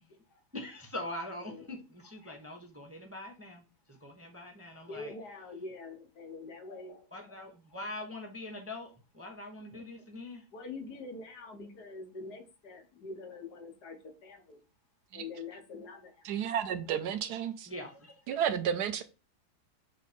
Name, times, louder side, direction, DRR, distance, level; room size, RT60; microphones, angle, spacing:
voice 1, 0.5-3.6 3.9-5.1 7.1-10.4 17.7-18.1, left 1 dB, 10° right, 0.6 m, -43 dB
voice 2, 1.4-1.7 4.9-7.0 10.5-14.0 14.2-14.6 15.1-16.1, left 3 dB, 70° left, 1.7 m, -44 dB
voice 3, 16.2-17.7 18.3-19.0, right 9 dB, 75° right, 1.1 m, -32 dB
6.2 x 3.6 x 4.2 m
omnidirectional pair, 1.9 m